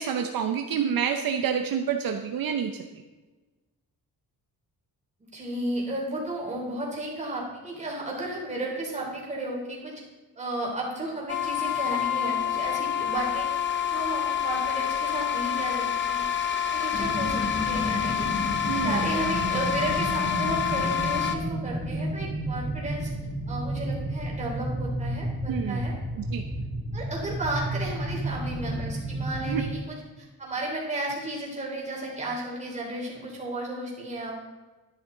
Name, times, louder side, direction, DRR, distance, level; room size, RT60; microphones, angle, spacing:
voice 1, 0.0-2.9 18.7-19.1 25.5-25.8 26.3-26.4 29.5-29.6, right 7 dB, 65° right, 5 dB, 0.8 m, -28 dB
voice 2, 5.3-9.9 10.3-13.5 13.8-16.3 16.6-18.3 18.7-23.1 23.5-25.9 26.9-34.3, right 1 dB, 20° right, -3 dB, 3.4 m, -33 dB
sound 1, 11.3-21.4, left 9 dB, 30° left, 0.7 m, -27 dB
sound 2, 16.9-29.7, right 1 dB, 15° left, 2.3 m, -31 dB
11.5 x 10.5 x 3.9 m, 1.2 s
wide cardioid pair, 170°, 37 cm